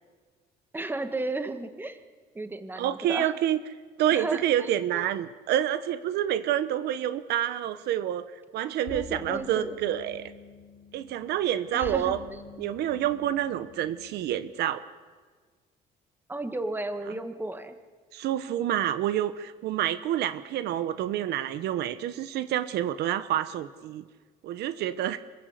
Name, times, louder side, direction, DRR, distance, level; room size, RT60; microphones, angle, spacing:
voice 1, 0.7-2.0 2.3-3.3 4.1-5.0 8.9-9.7 11.7-12.4 16.3-17.8, right 2 dB, 10° right, 8 dB, 1.7 m, -34 dB
voice 2, 2.8-3.6 4.0-8.2 8.5-10.3 10.9-12.2 12.6-14.8 17.1-17.2 18.1-24.0 24.4-25.2, right 11 dB, 75° right, 12 dB, 1.0 m, -28 dB
sound 1, 8.9-14.5, left 7 dB, 65° left, 1.9 m, -47 dB
26.0 x 15.0 x 8.1 m, 1.5 s
cardioid pair, 110°, 17 cm